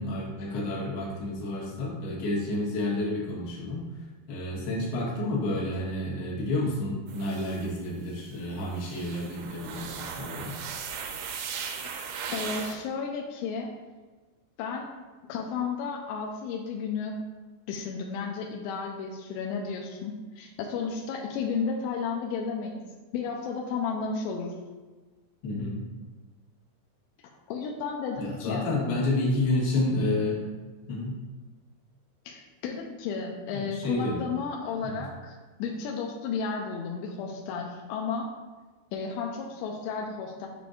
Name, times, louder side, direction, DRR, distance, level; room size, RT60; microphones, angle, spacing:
voice 1, 0.0-3.8 4.3-10.6 25.4-25.9 28.2-30.4 30.9-31.1 33.5-34.2 34.8-35.1, left 2 dB, 65° left, -5 dB, 2.9 m, -30 dB
sound 1, 7.1-7.7 8.3-8.4 8.7-12.8, right 6 dB, 85° right, 2.6 m, -37 dB
voice 2, 12.3-13.7 14.6-14.9 15.3-17.2 17.7-22.8 23.1-24.5 27.5-28.7 32.3-38.3 38.9-40.5, left 5 dB, 85° left, 0 dB, 2.5 m, -33 dB
9.0 x 5.0 x 2.5 m, 1.3 s
omnidirectional pair, 5.7 m